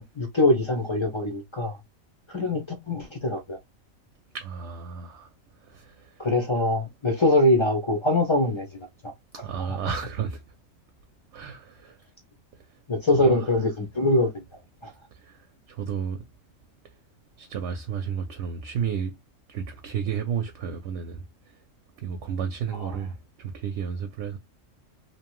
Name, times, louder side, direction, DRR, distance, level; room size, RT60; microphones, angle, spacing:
voice 1, 0.0-1.8 2.3-3.6 6.2-9.1 9.7-9.8 12.9-14.4 14.8-14.9 22.7-23.0, left 1 dB, 45° left, 0.4 m, -23 dB
voice 2, 4.3-5.3 5.6-6.3 9.3-10.4 11.3-12.0 13.2-13.4 15.1-16.2 17.4-19.2 19.5-21.5 22.0-24.4, right 7 dB, 70° right, 0.8 m, -32 dB
2.8 x 2.1 x 2.9 m
omnidirectional pair, 1.3 m